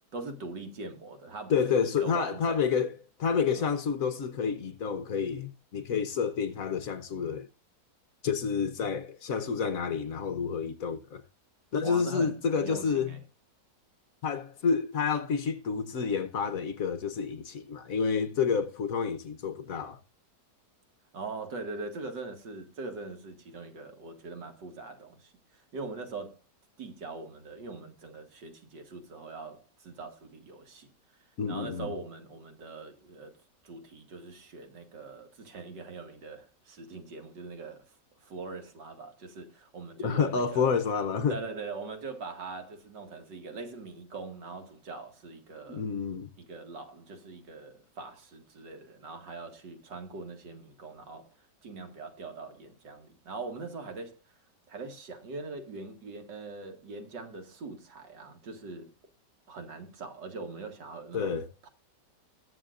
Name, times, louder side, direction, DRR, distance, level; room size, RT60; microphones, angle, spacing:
voice 1, 0.1-2.9 3.6-3.7 11.8-13.2 21.1-26.4 26.8-30.9 31.5-33.4 33.6-37.8 38.2-40.7 41.3-45.8 46.4-51.3 51.6-54.2 54.7-58.9 59.5-61.4 61.6-61.7, right 3 dB, 80° right, 2.6 m, -42 dB
voice 2, 1.5-2.9 3.2-7.5 8.2-11.2 11.7-13.1 14.2-20.0 31.4-31.9 40.0-41.4 45.7-46.3 61.1-61.5, left 6 dB, 55° left, 1.2 m, -29 dB
20.5 x 7.3 x 2.5 m
omnidirectional pair, 1.9 m